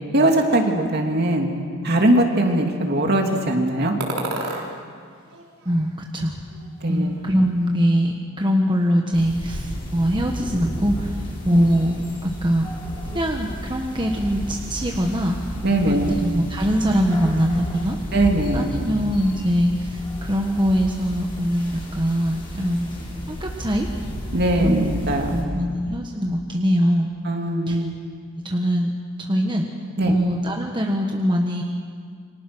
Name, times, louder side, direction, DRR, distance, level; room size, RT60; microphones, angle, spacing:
voice 1, 0.1-1.5 1.8-3.9 6.8-7.1 11.5-11.6 15.6-16.1 18.1-18.7 24.3-25.4 27.2-27.9 30.0-30.1, right 1 dB, 50° right, 2 dB, 2.8 m, -20 dB
sound 1, 4.0-4.7 5.2-6.2 6.5-7.3, right 2 dB, 85° right, 4.0 m, -32 dB
voice 2, 5.6-6.4 6.9-11.2 11.4-12.0 12.2-12.7 13.1-15.4 15.9-18.0 18.5-23.9 24.6-24.9 25.3-27.1 27.7-27.8 28.4-28.9 29.2-29.6 30.1-31.6, equal, 20° right, 1 dB, 1.4 m, -22 dB
sound 2, 9.1-25.4, equal, 25° left, 6.0 m, -32 dB
28.5 x 25.0 x 6.2 m, 2.1 s
head